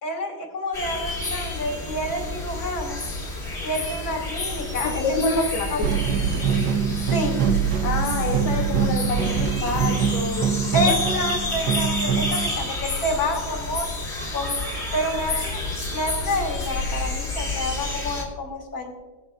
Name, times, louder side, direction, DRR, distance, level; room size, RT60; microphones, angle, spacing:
voice 1, 0.0-3.0 3.6-5.3 5.7-6.0 7.1-7.4 10.7-13.9 14.3-14.5 14.9-18.9, left 1 dB, 50° left, 2 dB, 2.7 m, -28 dB
sound 1, 0.7-18.2, left 2 dB, 35° left, 2.6 m, -30 dB
voice 2, 4.8-5.7 7.8-10.5 10.8-10.9, left 3 dB, 80° left, 1 dB, 1.6 m, -27 dB
sound 2, 5.8-12.5, right 7 dB, 65° right, 1.1 m, -24 dB
22.0 x 7.8 x 2.4 m, 1.4 s
omnidirectional pair, 2.1 m